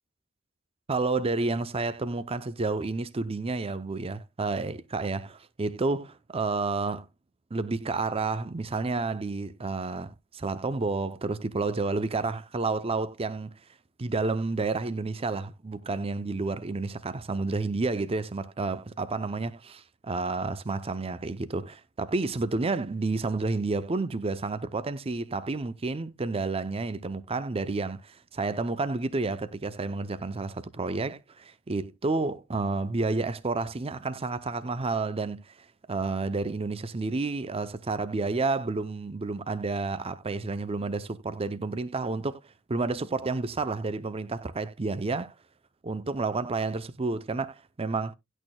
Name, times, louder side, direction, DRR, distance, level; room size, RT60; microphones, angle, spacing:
voice 1, 0.9-7.1 7.5-13.6 14.0-35.6 35.9-42.4 42.7-45.3 45.8-48.1, right 3 dB, 25° right, 0.6 m, -30 dB
11.0 x 6.3 x 2.2 m
head